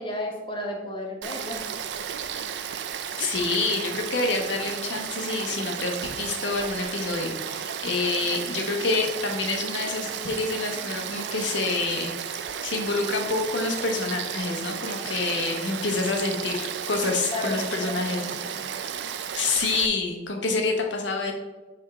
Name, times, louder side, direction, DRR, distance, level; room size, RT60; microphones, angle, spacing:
voice 1, 0.0-1.7 17.3-18.7, left 1 dB, 25° left, 2 dB, 1.0 m, -33 dB
Frog / Stream, 1.2-19.9, right 8 dB, 65° right, 0.4 m, -33 dB
voice 2, 3.2-18.2 19.3-21.3, left 3 dB, 75° left, 3 dB, 1.1 m, -27 dB
7.9 x 3.6 x 3.5 m, 1.2 s
head